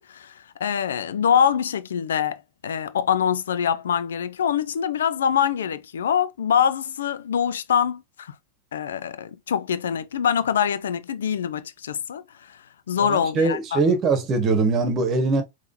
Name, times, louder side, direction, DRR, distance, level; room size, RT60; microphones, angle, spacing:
voice 1, 0.0-8.3 8.7-13.8, left 8 dB, 80° left, 0.4 m, -24 dB
voice 2, 13.1-15.4, right 3 dB, 35° right, 1.2 m, -21 dB
3.7 x 3.1 x 2.5 m
hypercardioid pair, 105°, 0 cm